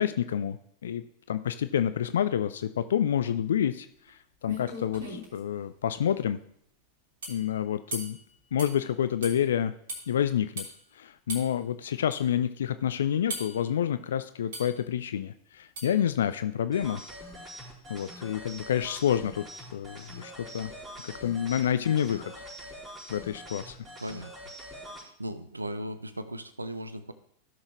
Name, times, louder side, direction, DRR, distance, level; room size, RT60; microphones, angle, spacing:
voice 1, 0.0-6.4 7.3-8.2 8.5-9.7 10.1-10.7 10.9-17.0 17.9-20.7 21.0-22.3 23.1-23.8, left 9 dB, 65° left, 12 dB, 0.4 m, -28 dB
sound 1, 4.1-4.2 4.5-5.4 7.2-7.4 7.9-8.2 8.6-8.8 9.2-9.4 9.9-10.1 10.6-10.7 11.3-11.5 12.1-12.2 13.3-13.6 14.5-14.8 15.8-16.0, right 1 dB, 60° right, 3.2 m, -38 dB
sound 2, 16.7-25.0, equal, 20° right, 4.4 m, -44 dB
voice 2, 24.0-24.5 25.0-27.1, right 1 dB, 80° right, 12 dB, 0.6 m, -37 dB
16.0 x 6.4 x 3.1 m, 0.71 s
figure-of-eight pair, 90°, 0 cm